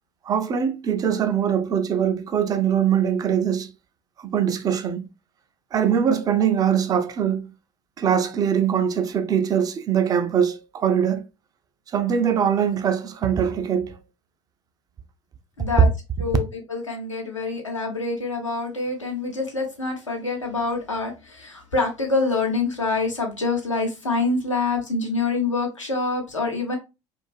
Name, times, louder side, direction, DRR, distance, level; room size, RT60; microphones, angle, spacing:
voice 1, 0.3-3.7 4.2-5.1 5.7-7.5 8.0-11.3 11.9-14.0, right 8 dB, 25° right, 0.3 m, -22 dB
voice 2, 15.6-15.9 16.2-26.8, left 3 dB, 85° left, 0.7 m, -26 dB
2.4 x 2.3 x 2.3 m
figure-of-eight pair, 65°, 16 cm